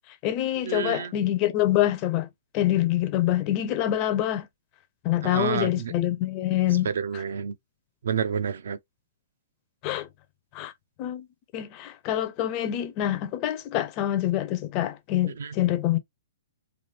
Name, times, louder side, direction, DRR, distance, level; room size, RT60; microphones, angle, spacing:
voice 1, 0.1-2.3 2.5-4.5 5.0-6.9 9.8-10.1 10.5-10.7 11.0-11.3 11.5-16.0, left 13 dB, 25° left, 0.5 m, -26 dB
voice 2, 0.6-1.1 5.2-5.9 6.8-7.6 8.0-8.8 15.4-15.5, right 7 dB, 65° right, 0.5 m, -29 dB
3.1 x 2.5 x 2.6 m
hypercardioid pair, 175°, 0 cm